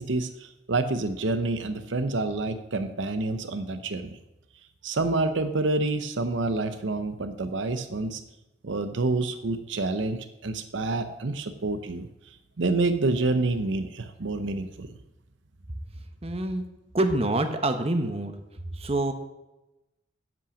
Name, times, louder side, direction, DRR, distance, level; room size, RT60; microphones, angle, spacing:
voice 1, 0.0-4.1 4.8-8.2 8.6-12.1 12.6-14.9, right 2 dB, 70° right, 9 dB, 0.7 m, -28 dB
voice 2, 16.2-16.6 16.9-18.3 18.8-19.1, right 2 dB, 30° right, 7 dB, 0.9 m, -26 dB
11.0 x 5.6 x 7.1 m, 0.97 s
head